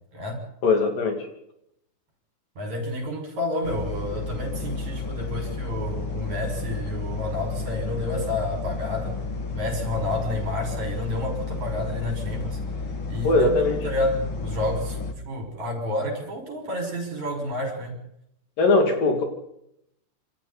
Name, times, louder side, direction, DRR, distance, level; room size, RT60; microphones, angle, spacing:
voice 1, 0.6-1.3 13.2-13.8 18.6-19.2, left 3 dB, 55° left, 4 dB, 4.3 m, -20 dB
voice 2, 2.6-9.2 9.5-12.6 13.1-13.6 13.8-15.0 15.3-17.9, left 1 dB, 45° right, 3 dB, 7.3 m, -30 dB
sound 1, 3.6-15.1, left 4 dB, 35° left, 2.7 m, -32 dB
28.5 x 28.0 x 4.3 m, 0.77 s
omnidirectional pair, 4.8 m